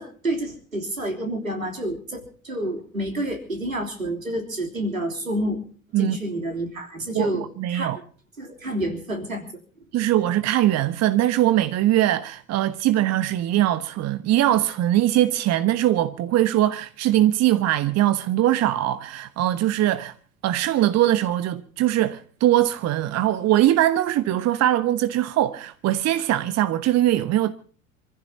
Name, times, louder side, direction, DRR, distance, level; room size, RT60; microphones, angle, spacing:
voice 1, 0.0-5.6 6.0-7.9 8.4-9.5, right 1 dB, 85° right, 3.5 m, -29 dB
voice 2, 7.1-8.0 9.9-20.1 20.4-27.5, right 13 dB, 40° right, 1.2 m, -21 dB
28.0 x 15.5 x 2.8 m
figure-of-eight pair, 65°, 40 cm